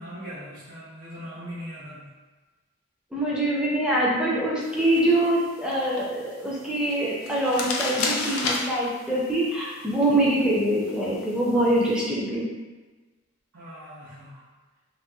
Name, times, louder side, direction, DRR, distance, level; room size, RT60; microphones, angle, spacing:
voice 1, 0.0-2.1 13.5-14.4, equal, 80° right, -11 dB, 0.7 m, -40 dB
voice 2, 3.1-12.5, right 1 dB, 5° right, -6 dB, 0.4 m, -24 dB
sound 1, 4.6-12.0, left 3 dB, 80° left, 0.4 m, -35 dB
2.9 x 2.6 x 2.2 m, 1.3 s
head